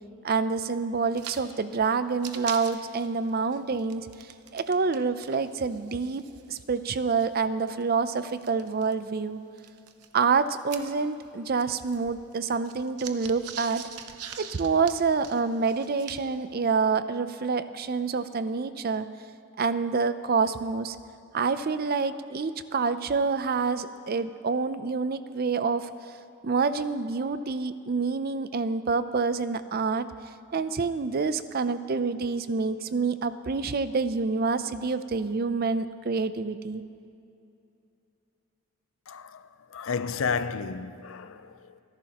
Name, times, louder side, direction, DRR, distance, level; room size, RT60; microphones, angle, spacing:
voice 1, 0.2-4.1 4.5-6.2 6.5-9.4 10.1-13.9 14.4-19.1 19.6-21.0 21.3-25.9 26.4-30.1 30.5-36.8, right 4 dB, 45° right, 0.5 m, -27 dB
sound 1, 1.1-1.4 1.7-1.8 2.1-5.0 5.2-8.9 9.6-11.3 11.5-16.4, right 8 dB, 85° right, 0.8 m, -43 dB
voice 2, 39.1-41.8, left 5 dB, 60° left, 0.5 m, -32 dB
28.0 x 11.5 x 2.9 m
head